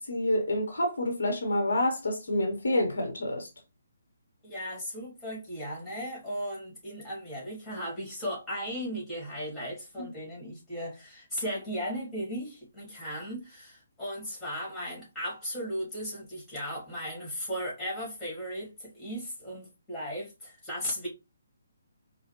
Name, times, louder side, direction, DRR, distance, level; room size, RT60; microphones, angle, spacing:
voice 1, 0.0-3.5 10.0-10.1, left 1 dB, 60° left, 1.0 m, -28 dB
voice 2, 4.4-21.1, equal, 5° left, 2.1 m, -36 dB
4.7 x 2.3 x 3.0 m
figure-of-eight pair, 140°, 0 cm